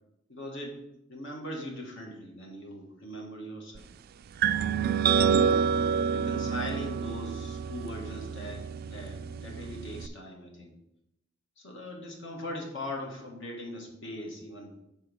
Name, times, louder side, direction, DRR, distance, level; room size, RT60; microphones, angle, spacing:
voice 1, 0.3-0.8 1.1-3.9 5.0-5.4 6.1-10.7 11.6-14.7, left 1 dB, 65° left, 1 dB, 1.7 m, -40 dB
sound 1, 4.4-10.1, right 7 dB, 50° right, 0.3 m, -28 dB
6.3 x 4.2 x 6.3 m, 0.85 s
head